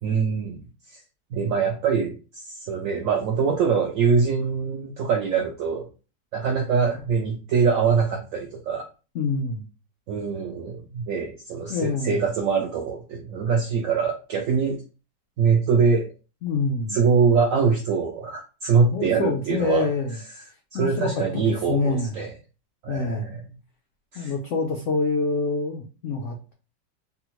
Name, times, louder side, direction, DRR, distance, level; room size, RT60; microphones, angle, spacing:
voice 1, 0.0-1.0 1.3-5.9 6.3-8.8 10.1-14.8 15.4-16.1 16.9-19.9 20.7-22.3 22.8-23.5 24.1-24.3, right 5 dB, 80° right, 1 dB, 0.7 m, -23 dB
voice 2, 9.1-9.7 11.7-12.2 16.4-17.0 18.9-20.2 20.7-22.1 22.9-23.3 24.2-26.5, left 4 dB, 85° left, 1 dB, 0.6 m, -26 dB
3.6 x 2.0 x 2.9 m, 0.34 s
omnidirectional pair, 1.9 m